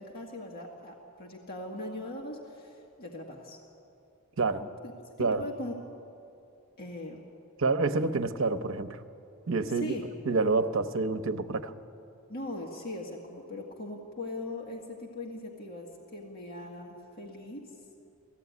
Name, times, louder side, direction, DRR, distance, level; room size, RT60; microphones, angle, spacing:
voice 1, 0.0-3.6 4.8-4.9 5.2-5.7 6.8-7.2 9.7-10.1 12.3-17.7, left 1 dB, 45° left, -1 dB, 1.9 m, -40 dB
voice 2, 7.6-9.0 9.5-9.9 10.3-11.7, right 3 dB, 65° right, 8 dB, 0.8 m, -28 dB
18.0 x 15.0 x 9.5 m, 2.7 s
head